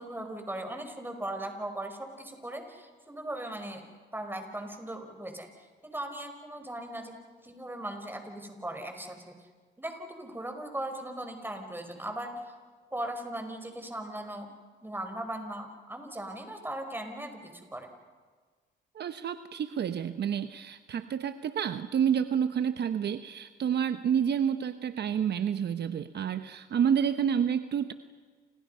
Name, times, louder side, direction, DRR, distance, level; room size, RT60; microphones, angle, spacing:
voice 1, 0.0-5.5 5.8-7.1 7.4-9.3 9.8-12.6 12.9-14.5 14.8-17.9, right 1 dB, 10° right, 5 dB, 5.1 m, -38 dB
voice 2, 18.9-27.9, right 8 dB, 60° right, 10 dB, 1.0 m, -29 dB
29.5 x 28.0 x 5.6 m, 1.5 s
cardioid pair, 90°, 20 cm